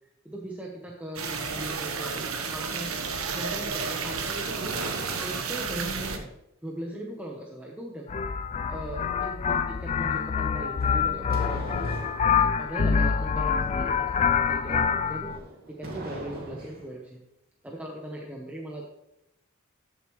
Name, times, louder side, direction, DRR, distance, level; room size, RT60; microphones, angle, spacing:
voice 1, 0.2-4.8 5.2-6.3 6.6-8.1 8.7-12.0 12.4-15.3 15.7-17.2 17.6-18.8, right 1 dB, 5° right, -2 dB, 1.0 m, -39 dB
sound 1, 1.1-6.2, right 5 dB, 90° right, 1.1 m, -32 dB
sound 2, 4.0-5.8 10.7-12.3 15.2-16.9, right 1 dB, 50° right, 2.3 m, -40 dB
sound 3, 8.1-15.4, left 6 dB, 35° left, 0.3 m, -26 dB
13.5 x 7.2 x 3.1 m, 0.86 s
head